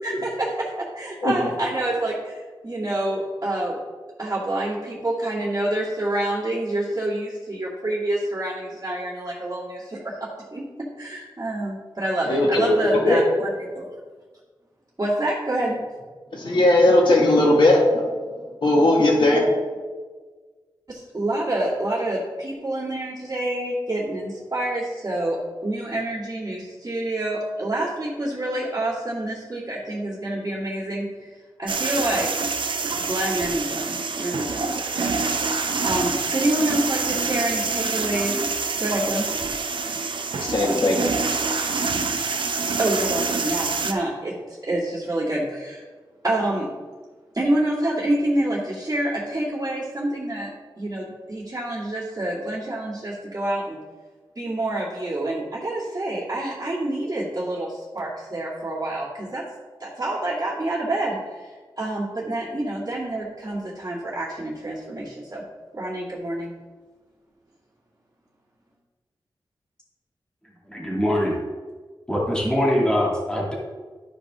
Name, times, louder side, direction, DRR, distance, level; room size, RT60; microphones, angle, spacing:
voice 1, 0.0-3.8 4.2-10.6 11.0-13.9 15.0-15.8 20.9-31.3 31.6-32.3 33.0-35.1 35.8-38.5 38.7-39.3 42.8-44.4 44.6-45.8 46.2-46.7 47.3-53.8 54.4-59.4 59.8-65.4 65.7-66.5, right 1 dB, 35° right, -11 dB, 2.4 m, -27 dB
voice 2, 12.3-13.2 16.3-18.1 18.6-19.5 40.4-41.2, left 1 dB, 65° left, -2 dB, 2.0 m, -18 dB
sound 1, 31.7-43.9, right 4 dB, 70° right, 0.7 m, -26 dB
voice 3, 70.7-71.4 72.1-73.5, equal, 10° left, -5 dB, 2.6 m, -22 dB
12.5 x 5.0 x 3.7 m, 1.4 s
wide cardioid pair, 85°, 9 cm